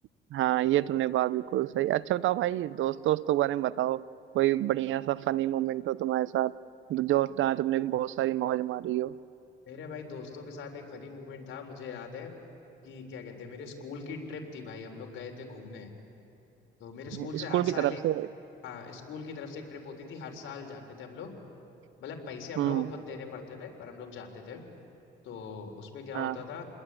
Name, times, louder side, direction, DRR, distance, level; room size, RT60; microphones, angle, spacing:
voice 1, 0.3-4.0 4.3-6.5 6.9-9.1 17.2-18.3 22.6-22.9 26.1-26.4, right 14 dB, 80° right, 19 dB, 0.6 m, -28 dB
voice 2, 9.7-12.3 12.8-15.9 16.8-18.0 18.6-21.3 22.0-24.6 25.2-26.6, left 5 dB, 80° left, 3 dB, 3.7 m, -41 dB
29.0 x 21.0 x 8.8 m, 2.7 s
cardioid pair, 90°, 20 cm